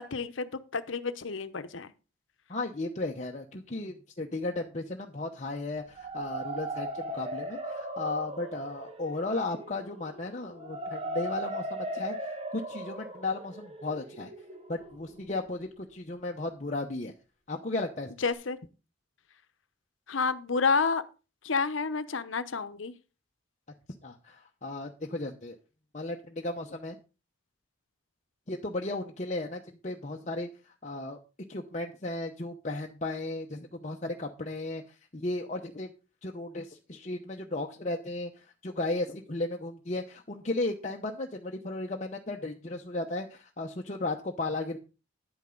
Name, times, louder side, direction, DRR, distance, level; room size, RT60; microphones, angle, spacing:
voice 1, 0.1-1.9 18.2-18.6 20.1-21.0 21.4-22.9, left 4 dB, 85° left, 13 dB, 0.9 m, -29 dB
voice 2, 2.5-14.3 14.7-17.1 17.5-18.1 24.0-25.6 25.9-27.0 28.5-31.2 31.5-35.9 36.2-44.8, left 2 dB, 35° left, 1 dB, 0.9 m, -35 dB
sound 1, 5.8-15.6, right 1 dB, 30° right, 1.4 m, -38 dB
10.5 x 9.0 x 3.9 m, 0.32 s
head